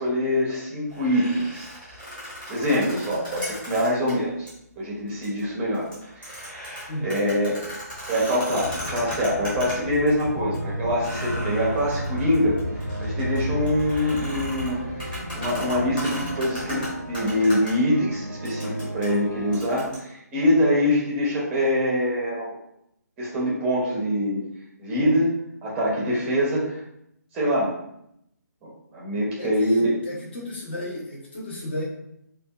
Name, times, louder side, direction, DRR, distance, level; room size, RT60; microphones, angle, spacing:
voice 1, 0.0-1.7 2.5-4.5 4.8-5.9 6.2-6.7 7.0-7.6 8.1-12.6 13.0-14.8 15.3-22.6 23.2-24.4 24.8-25.3 25.6-26.8 27.3-27.7 28.6-29.9, equal, 10° right, -5 dB, 0.6 m, -24 dB
sound 1, 0.9-4.1 4.5-4.6 5.1-5.4 5.7-10.2 10.5-10.6 11.0-17.7 18.5-20.0, equal, 10° left, 0.9 m, -37 dB
Aircraft, 8.5-18.0, left 3 dB, 70° left, 0.9 m, -37 dB
sound 2, 10.1-19.6, right 1 dB, 80° right, 0.4 m, -34 dB
voice 2, 29.4-31.8, left 1 dB, 35° left, -3 dB, 0.7 m, -33 dB
2.5 x 2.2 x 2.2 m, 0.77 s
figure-of-eight pair, 145°, 10 cm